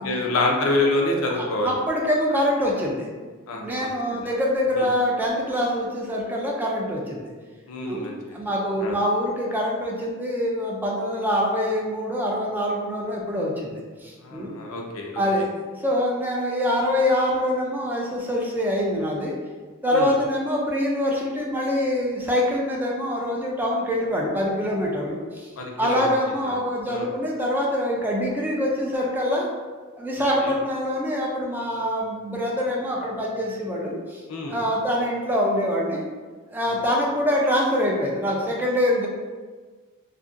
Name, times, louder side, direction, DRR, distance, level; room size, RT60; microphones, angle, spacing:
voice 1, 0.0-1.7 3.5-4.3 4.7-4.9 7.7-8.1 8.8-9.0 14.2-15.2 19.9-20.1 25.6-26.1 26.4-26.5 26.9-27.1 30.4-30.5 34.3-34.6, left 2 dB, 65° left, 0 dB, 0.5 m, -26 dB
voice 2, 1.3-3.1 3.6-7.3 7.8-14.6 15.2-19.3 19.8-25.5 25.8-29.5 30.0-36.0 36.5-39.1, equal, 10° right, -2 dB, 0.3 m, -25 dB
2.7 x 2.5 x 2.5 m, 1.4 s
head